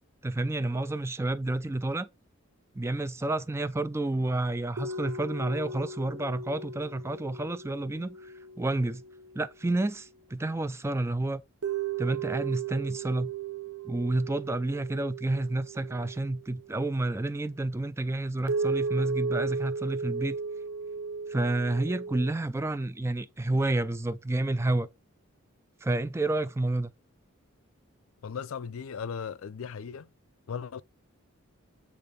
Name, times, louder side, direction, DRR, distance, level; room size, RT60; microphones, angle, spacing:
voice 1, 0.2-2.1 2.8-9.0 9.3-11.4 12.0-13.3 13.8-20.4 21.3-24.9 25.8-26.9, right 2 dB, 10° right, 0.3 m, -30 dB
sound 1, 4.8-10.2 11.6-17.0 18.5-22.3, right 5 dB, 90° right, 0.7 m, -36 dB
voice 2, 28.2-30.1 30.5-30.8, left 6 dB, 75° left, 0.4 m, -37 dB
8.5 x 3.1 x 5.1 m
head